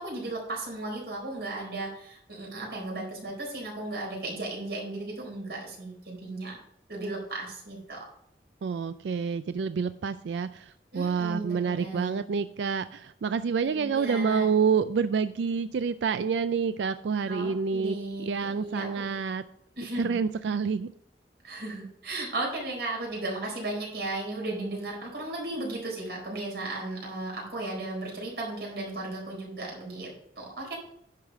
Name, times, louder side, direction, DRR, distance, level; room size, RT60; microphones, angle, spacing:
voice 1, 0.0-6.6 6.9-8.1 10.9-12.2 13.7-14.5 17.2-19.1 19.8-20.1 21.4-30.8, right 2 dB, 70° right, -2 dB, 4.2 m, -35 dB
voice 2, 8.6-19.4 20.0-20.9, right 5 dB, 85° right, 12 dB, 0.4 m, -28 dB
10.5 x 4.9 x 6.0 m, 0.72 s
head